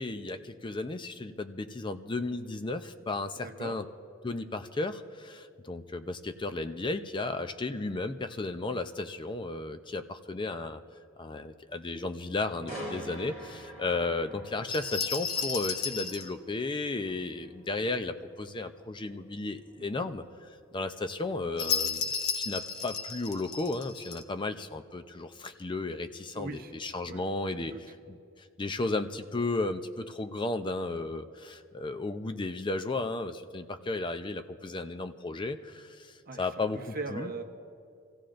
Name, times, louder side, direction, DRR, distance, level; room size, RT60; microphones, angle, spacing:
voice 1, 0.0-3.9 4.2-10.8 11.2-20.2 20.7-27.7 28.1-37.3, left 2 dB, 25° left, 9 dB, 0.5 m, -34 dB
voice 2, 3.4-3.8 12.6-12.8 19.8-20.1 26.3-26.7 27.0-27.3 27.6-27.8 36.3-36.4 36.7-37.5, right 3 dB, 45° right, 5 dB, 0.9 m, -40 dB
sound 1, 12.7-26.5 26.9-27.2, equal, 70° left, 2.2 m, -49 dB
sound 2, 14.7-16.3 21.6-24.2, left 5 dB, 90° left, 0.9 m, -33 dB
28.0 x 15.5 x 2.6 m, 2.4 s
head